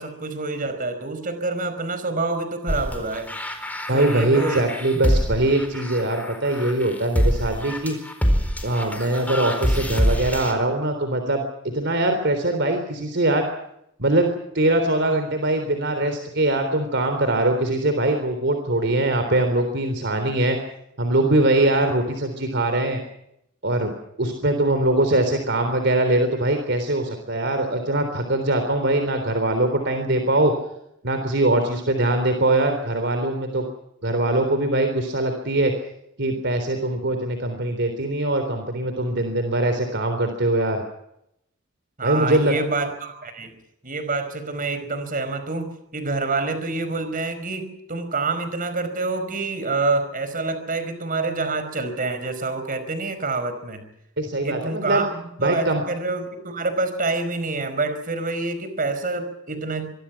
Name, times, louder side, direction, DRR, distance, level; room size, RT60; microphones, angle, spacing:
voice 1, 0.0-3.3 3.9-5.0 42.0-43.5 43.8-53.8 54.4-59.9, right 3 dB, 40° right, 10 dB, 5.1 m, -27 dB
sound 1, 2.7-10.5, equal, 10° left, 4.3 m, -25 dB
voice 2, 3.9-8.0 8.6-13.5 14.0-20.6 21.0-23.0 23.6-23.9 24.2-30.5 31.0-33.6 34.0-35.7 36.2-40.8 42.0-42.5 54.2-55.0 55.4-55.8, right 1 dB, 60° right, 7 dB, 3.7 m, -22 dB
25.5 x 22.5 x 6.0 m, 0.79 s
head